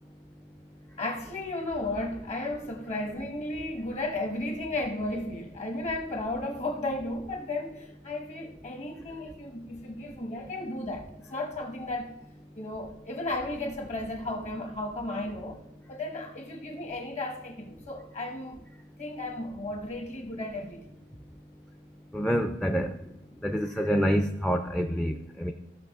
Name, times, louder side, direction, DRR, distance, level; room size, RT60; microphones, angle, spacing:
voice 1, 1.0-12.1 12.6-15.6 15.9-18.6 19.0-20.9, left 2 dB, 40° left, 1.1 m, -34 dB
voice 2, 22.1-22.9 23.4-25.5, equal, 5° left, 0.4 m, -27 dB
15.0 x 5.6 x 3.6 m
head